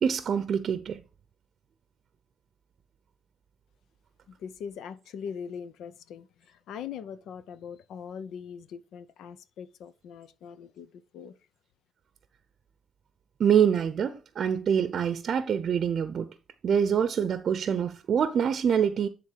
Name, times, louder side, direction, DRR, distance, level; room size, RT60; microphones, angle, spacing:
voice 1, 0.0-1.0 13.4-16.3 16.6-19.1, right 8 dB, 60° right, 0.6 m, -25 dB
voice 2, 4.3-11.3, left 7 dB, 80° left, 0.7 m, -41 dB
11.0 x 3.7 x 4.6 m
cardioid pair, 90°, 0 cm